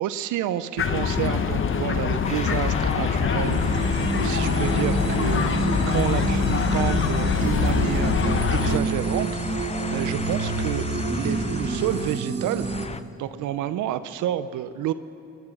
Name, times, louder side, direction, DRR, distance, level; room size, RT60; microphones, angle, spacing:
voice 1, 0.0-14.9, right 11 dB, 80° right, 12 dB, 0.6 m, -30 dB
sound 1, 0.8-8.8, left 6 dB, 40° left, 0.9 m, -24 dB
sound 2, 2.2-12.2 12.5-13.0, left 5 dB, 20° left, 0.5 m, -34 dB
sound 3, 3.4-12.9, right 4 dB, 35° right, 1.7 m, -28 dB
19.5 x 11.0 x 6.0 m, 2.9 s
cardioid pair, 90°, 30 cm